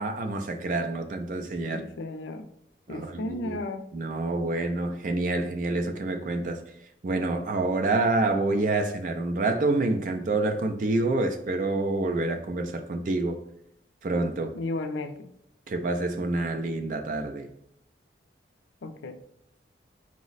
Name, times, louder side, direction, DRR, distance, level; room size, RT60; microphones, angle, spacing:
voice 1, 0.0-1.8 2.9-3.6 3.9-6.6 7.0-13.4 14.0-14.5 15.7-17.5, right 2 dB, 45° right, 6 dB, 0.4 m, -27 dB
voice 2, 1.7-2.5 2.9-3.8 14.5-15.3 18.8-19.2, left 2 dB, 75° left, 8 dB, 0.4 m, -34 dB
4.9 x 2.0 x 3.9 m, 0.75 s
head